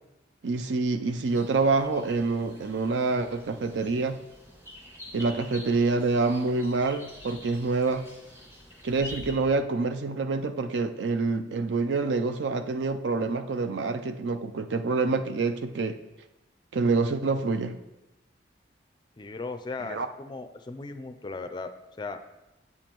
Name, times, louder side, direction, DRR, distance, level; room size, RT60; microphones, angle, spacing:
voice 1, 0.4-4.2 5.1-8.1 8.8-16.0 16.7-17.8 19.9-20.1, right 3 dB, 75° right, 9 dB, 0.5 m, -27 dB
sound 1, 1.2-9.3, left 1 dB, 15° right, 1.4 m, -47 dB
voice 2, 19.2-21.7 22.0-22.2, left 3 dB, 25° left, 7 dB, 0.4 m, -37 dB
8.4 x 7.1 x 3.0 m, 0.99 s
head